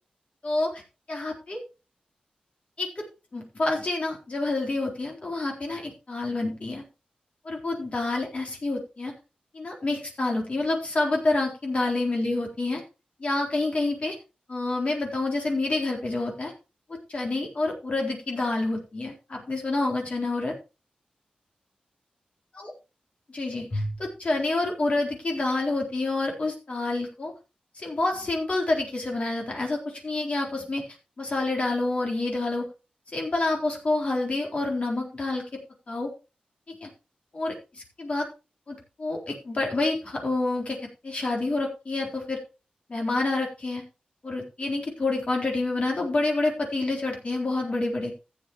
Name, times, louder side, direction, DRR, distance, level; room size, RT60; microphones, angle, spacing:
voice 1, 0.4-0.8 1.1-1.6 2.8-3.0 3.3-6.8 7.4-9.1 9.5-12.8 13.2-14.2 14.5-16.5 17.1-20.5 22.6-22.7 23.3-27.3 27.8-30.8 31.2-32.7 33.1-35.4 35.9-36.1 36.8-36.9 37.3-38.3 38.7-40.8 41.0-42.4 42.9-43.8 44.2-48.1, left 2 dB, 50° left, 0 dB, 3.9 m, -28 dB
14.5 x 8.3 x 3.1 m, 0.30 s
wide cardioid pair, 75°, 3 cm